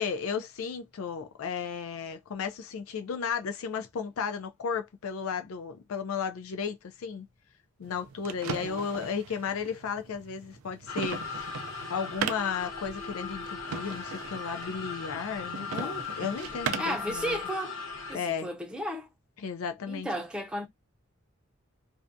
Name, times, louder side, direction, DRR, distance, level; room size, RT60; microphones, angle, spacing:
voice 1, 0.0-7.3 7.8-17.4 18.1-18.5 19.4-20.1, left 6 dB, 85° left, 0.4 m, -34 dB
sound 1, 7.8-17.1, right 7 dB, 90° right, 0.4 m, -39 dB
voice 2, 8.5-8.9 15.6-16.0 16.8-17.8 18.1-19.1 19.9-20.7, right 1 dB, 5° right, 0.5 m, -34 dB
sound 2, 10.9-18.2, left 5 dB, 70° left, 0.8 m, -38 dB
2.4 x 2.2 x 2.6 m
head